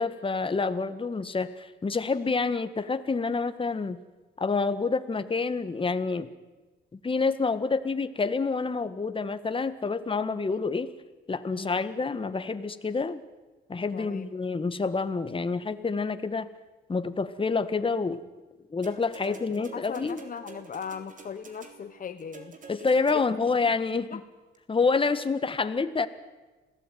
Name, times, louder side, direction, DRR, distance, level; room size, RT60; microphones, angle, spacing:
voice 1, 0.0-4.0 4.4-6.3 6.9-10.9 11.3-13.2 13.7-16.5 16.9-18.2 18.7-20.2 22.7-24.2 24.7-26.1, left 4 dB, 25° left, 11 dB, 1.7 m, -28 dB
voice 2, 11.5-11.8 13.9-14.3 19.2-22.6 23.1-23.2 24.1-24.2 25.6-25.7, left 7 dB, 45° left, 9 dB, 1.3 m, -39 dB
sound 1, 18.8-23.6 24.5-24.6, right 5 dB, 40° right, 3.7 m, -48 dB
26.5 x 17.0 x 9.4 m, 1.2 s
cardioid pair, 90°, 20 cm